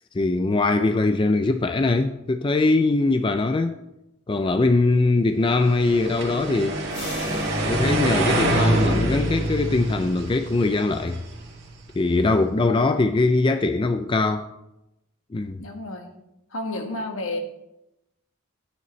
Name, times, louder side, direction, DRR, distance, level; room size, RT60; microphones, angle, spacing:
voice 1, 0.1-3.8 4.3-6.8 7.3-11.2 12.0-14.5 15.3-15.6, left 3 dB, 25° left, 0.4 m, -22 dB
sound 1, 5.7-11.8, right 1 dB, 55° right, 2.0 m, -25 dB
sound 2, 6.9-9.7, left 3 dB, 50° left, 3.3 m, -42 dB
voice 2, 15.6-16.1 16.5-17.4, left 2 dB, 70° left, 1.5 m, -31 dB
13.5 x 9.4 x 3.2 m
head